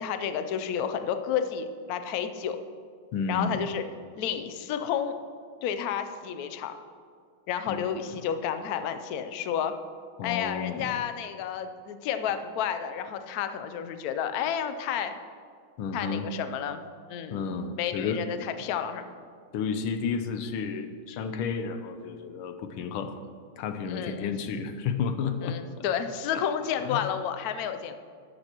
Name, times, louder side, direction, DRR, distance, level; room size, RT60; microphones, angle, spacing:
voice 1, 0.0-2.6 3.3-3.8 4.2-5.2 5.6-6.7 7.5-9.7 10.2-15.2 15.9-16.8 17.1-17.4 17.8-19.0 23.9-24.3 25.4-28.0, left 8 dB, 75° left, 9 dB, 0.8 m, -31 dB
voice 2, 3.1-3.6 7.7-7.8 10.2-10.9 15.8-16.3 17.3-18.2 19.5-23.2 23.6-25.6 26.3-26.4 26.8-27.1, left 6 dB, 90° left, 8 dB, 1.6 m, -32 dB
13.0 x 10.5 x 3.0 m, 2.2 s
omnidirectional pair, 2.3 m